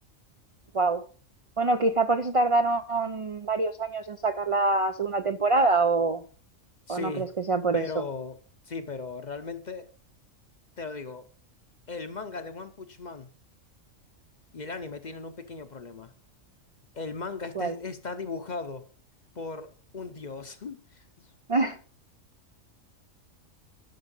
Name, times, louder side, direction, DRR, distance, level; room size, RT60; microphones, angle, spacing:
voice 1, 1.6-6.2 6.9-8.0 17.6-17.7 21.5-21.8, right 3 dB, 50° right, 0.4 m, -25 dB
voice 2, 6.9-7.3 7.7-8.4 8.7-9.9 10.8-11.3 11.9-13.3 14.5-16.1 16.9-18.8 19.3-21.3, left 4 dB, 40° left, 0.7 m, -37 dB
11.5 x 6.1 x 5.4 m
omnidirectional pair, 1.4 m